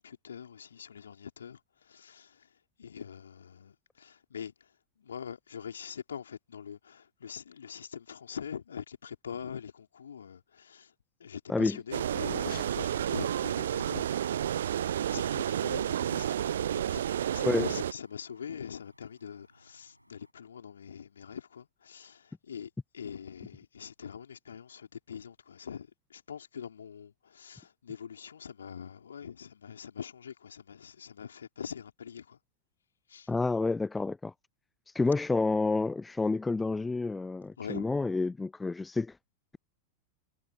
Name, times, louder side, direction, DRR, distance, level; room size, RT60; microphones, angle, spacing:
voice 1, 0.0-2.5 2.8-10.9 11.2-14.7 15.1-32.4 33.1-33.3 37.6-37.9, left 7 dB, 70° left, 3.8 m, -43 dB
sound 1, 11.9-17.9, right 10 dB, 65° right, 0.5 m, -31 dB
sound 2, 14.9-20.3, equal, 90° right, 6.9 m, -63 dB
voice 2, 33.3-34.3 34.9-39.2, left 3 dB, 10° left, 0.7 m, -29 dB
figure-of-eight pair, 90°, 0 cm